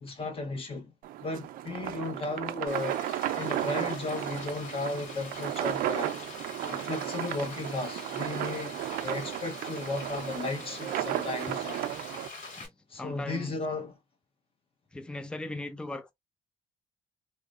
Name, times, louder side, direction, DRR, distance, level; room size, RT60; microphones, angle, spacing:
voice 1, 0.0-0.9 1.2-3.0 3.3-6.2 6.6-11.8 12.9-14.0, left 3 dB, 40° left, 1.2 m, -35 dB
sound 1, 1.0-12.3, right 12 dB, 75° right, 0.5 m, -34 dB
Frying (food), 2.7-12.7, left 3 dB, 60° left, 2.0 m, -44 dB
voice 2, 12.5-13.6 14.9-16.1, left 2 dB, 5° left, 0.4 m, -39 dB
3.1 x 2.9 x 2.4 m
cardioid pair, 120°, 15 cm